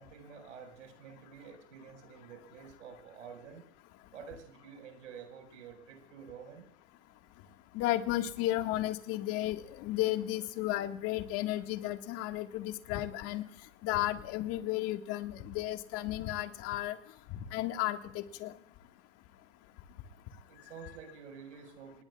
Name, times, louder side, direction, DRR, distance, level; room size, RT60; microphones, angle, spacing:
voice 1, 0.0-3.6 4.1-6.6 20.5-22.0, right 7 dB, 80° right, 5 dB, 5.3 m, -49 dB
voice 2, 7.7-13.4 13.8-17.0 17.5-18.5, left 15 dB, 40° left, 6 dB, 1.7 m, -33 dB
28.5 x 20.5 x 2.4 m, 0.75 s
hypercardioid pair, 130°, 37 cm